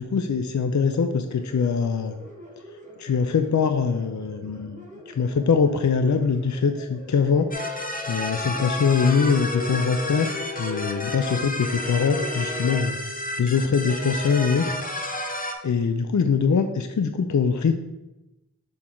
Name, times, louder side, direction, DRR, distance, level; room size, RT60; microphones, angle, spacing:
voice 1, 0.0-2.2 3.0-7.5 8.1-13.0 13.4-15.1 15.6-17.8, left 5 dB, 55° left, 7 dB, 0.5 m, -23 dB
sound 1, 0.9-14.6, right 1 dB, 20° right, 1.2 m, -45 dB
sound 2, 7.5-15.5, left 2 dB, 25° left, 0.8 m, -30 dB
6.3 x 4.3 x 3.8 m, 0.95 s
wide cardioid pair, 45°, 35 cm